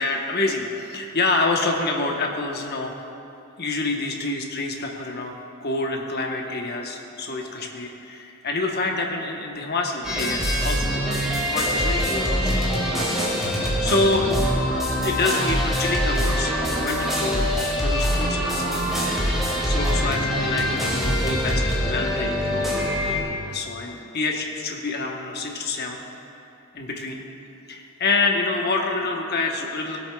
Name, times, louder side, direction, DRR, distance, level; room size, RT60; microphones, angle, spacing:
voice 1, 0.0-3.0 3.6-5.3 5.6-12.5 13.1-17.6 17.8-18.9 19.2-22.9 23.4-26.0 26.7-27.2 27.7-30.0, left 3 dB, 50° left, 1 dB, 1.0 m, -27 dB
sound 1, 10.0-23.2, equal, ahead, 2.0 m, -24 dB
19.0 x 8.2 x 2.3 m, 2.8 s
head